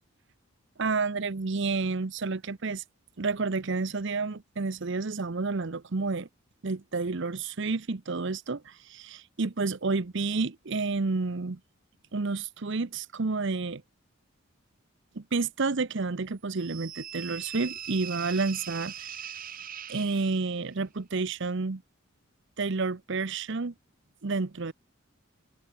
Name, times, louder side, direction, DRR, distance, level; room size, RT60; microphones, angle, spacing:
voice 1, 0.8-2.8 3.2-6.3 6.6-11.6 12.1-13.8 15.2-19.1 19.9-21.8 22.6-23.7 24.2-24.7, right 3 dB, 60° right, 0.8 m, -30 dB
sound 1, 16.5-20.7, right 9 dB, 45° right, 2.6 m, -41 dB
head